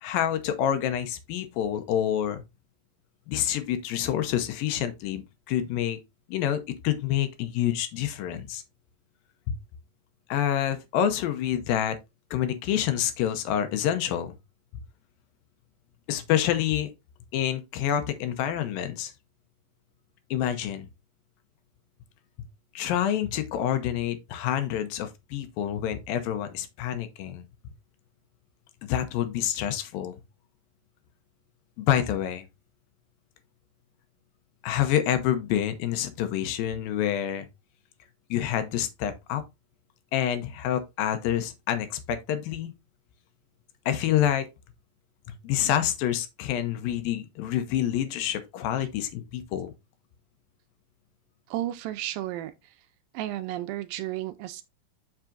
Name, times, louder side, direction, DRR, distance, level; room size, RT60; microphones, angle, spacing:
voice 1, 0.0-2.4 3.3-6.0 6.3-8.6 9.5-9.6 10.3-12.0 12.3-14.4 16.1-16.9 17.3-19.1 20.3-20.9 22.8-27.4 28.8-30.2 31.8-32.4 34.6-37.5 38.3-39.4 40.1-42.7 43.9-44.5 45.3-49.7, left 10 dB, 75° left, 2.4 m, -27 dB
voice 2, 51.5-52.7 53.1-54.6, right 14 dB, 80° right, 2.1 m, -33 dB
7.2 x 6.0 x 2.5 m
omnidirectional pair, 4.2 m